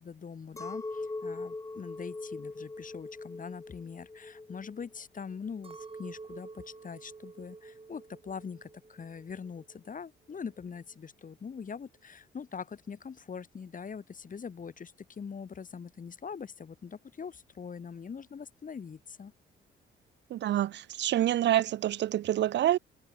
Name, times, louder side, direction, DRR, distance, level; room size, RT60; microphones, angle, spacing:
voice 1, 0.0-19.3, left 6 dB, 40° left, 5.9 m, -43 dB
Chink clink, 0.6-6.0, left 3 dB, 15° left, 1.1 m, -41 dB
Chink clink 2, 5.6-10.0 10.3-11.1, right 4 dB, 25° right, 5.7 m, -50 dB
voice 2, 20.3-22.8, right 12 dB, 65° right, 0.5 m, -27 dB
cardioid pair, 90°, 20 cm